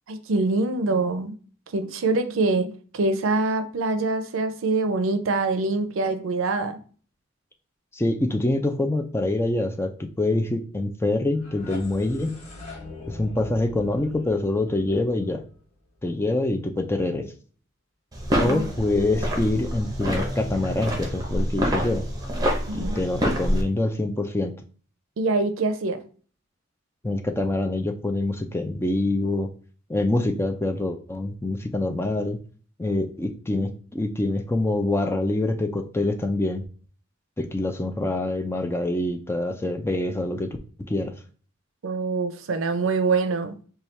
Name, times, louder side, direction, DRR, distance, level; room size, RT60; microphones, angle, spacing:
voice 1, 0.1-1.3 1.7-6.8 18.4-18.7 22.7-23.0 25.2-26.0 41.8-43.6, right 3 dB, 80° right, 0.5 m, -24 dB
voice 2, 7.9-12.4 13.1-15.4 16.0-17.3 18.4-22.0 22.7-24.5 27.0-29.5 29.9-32.4 32.8-36.6 37.4-41.1, left 2 dB, 10° left, 0.3 m, -25 dB
sound 1, 11.3-16.2, left 2 dB, 35° left, 0.9 m, -43 dB
sound 2, 18.1-23.6, equal, 20° right, 0.7 m, -27 dB
4.2 x 2.3 x 3.2 m
head